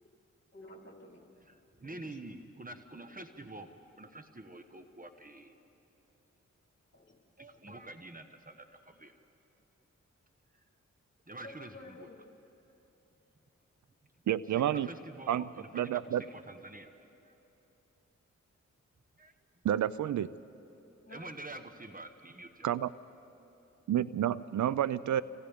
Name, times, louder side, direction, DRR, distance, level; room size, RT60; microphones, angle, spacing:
voice 1, 0.5-1.3 1.8-2.2 6.9-7.2 11.4-12.2 21.1-21.4, left 2 dB, 40° left, -1 dB, 3.9 m, -51 dB
voice 2, 1.4-3.7 4.0-5.5 7.4-9.2 11.3-12.1 14.5-17.3 19.2-19.3 21.1-22.7, right 2 dB, 30° right, 7 dB, 1.3 m, -47 dB
voice 3, 14.3-14.9 15.3-15.5 15.7-16.2 19.6-20.3 22.6-22.9 23.9-25.2, right 11 dB, 70° right, 18 dB, 0.5 m, -29 dB
29.5 x 24.5 x 3.6 m, 2.9 s
cardioid pair, 45°, 30 cm